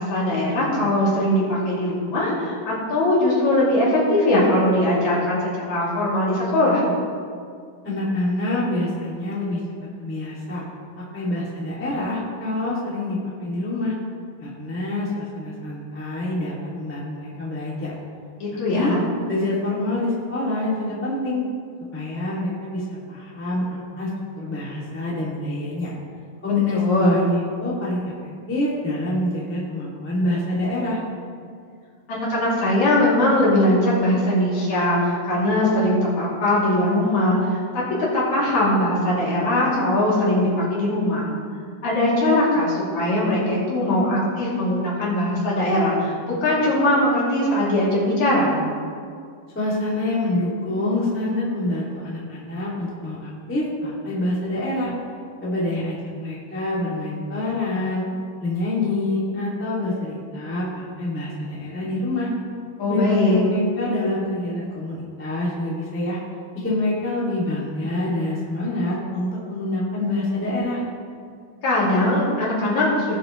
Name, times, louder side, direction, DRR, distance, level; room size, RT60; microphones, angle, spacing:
voice 1, 0.0-6.8 18.4-19.0 26.7-27.2 32.1-37.6 38.1-41.3 41.8-48.5 62.8-63.4 71.6-73.2, left 1 dB, 55° left, -7 dB, 3.9 m, -20 dB
voice 2, 7.8-9.6 10.0-10.6 11.1-13.9 14.4-17.9 18.7-18.9 19.3-21.4 21.9-24.1 24.3-25.9 26.4-31.0 49.5-54.9 55.4-58.0 58.4-62.3 62.9-66.2 66.5-70.8, left 2 dB, 5° left, -7 dB, 1.2 m, -26 dB
18.5 x 7.0 x 3.1 m, 2.2 s
omnidirectional pair, 4.2 m